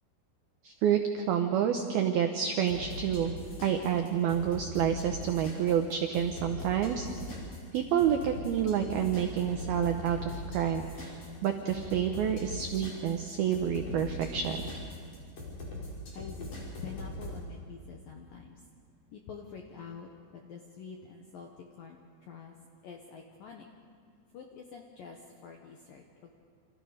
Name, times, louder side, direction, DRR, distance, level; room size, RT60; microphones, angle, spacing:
voice 1, 0.6-3.3 3.6-7.1 7.7-14.6, right 9 dB, 90° right, 5 dB, 2.1 m, -29 dB
sound 1, 2.7-17.4, left 2 dB, 40° left, 6.4 m, -41 dB
voice 2, 16.1-18.6 19.1-22.5 22.8-23.7 24.3-26.4, left 6 dB, 75° left, 1 dB, 2.1 m, -47 dB
29.0 x 27.0 x 5.2 m, 2.2 s
omnidirectional pair, 5.9 m